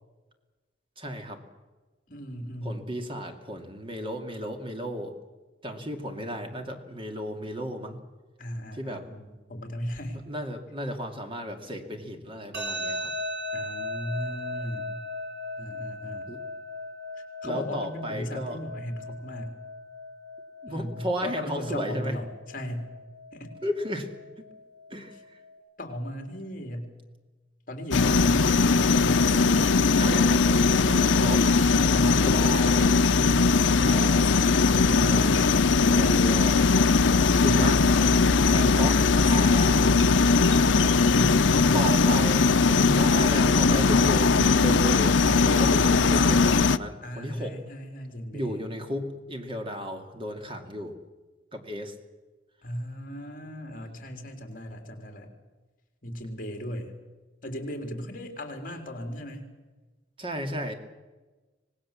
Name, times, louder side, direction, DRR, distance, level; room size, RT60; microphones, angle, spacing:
voice 1, 1.0-1.4 2.6-5.2 5.6-8.0 8.7-9.1 10.3-13.1 16.3-16.4 17.4-18.6 20.6-22.1 23.6-24.1 24.9-25.1 30.0-31.5 32.0-32.9 33.8-34.3 35.0-35.3 35.9-36.7 37.4-38.1 38.4-39.7 41.7-47.6 48.3-51.0 51.5-51.9 60.2-60.7, equal, 30° right, 5 dB, 2.4 m, -34 dB
voice 2, 2.1-2.9 8.4-10.2 13.5-15.0 15.6-16.3 17.4-19.5 20.7-22.9 23.3-23.5 25.8-26.9 27.7-29.3 31.9-32.3 34.6-35.3 39.4-40.1 41.1-41.9 47.0-48.7 52.6-55.3 56.0-56.9 57.4-59.4, equal, 45° left, 4 dB, 3.5 m, -36 dB
sound 1, 12.5-25.5, left 1 dB, 75° right, 5.8 m, -38 dB
sound 2, 27.9-46.8, left 4 dB, 75° left, 0.7 m, -20 dB
26.0 x 19.0 x 7.5 m, 1.2 s
head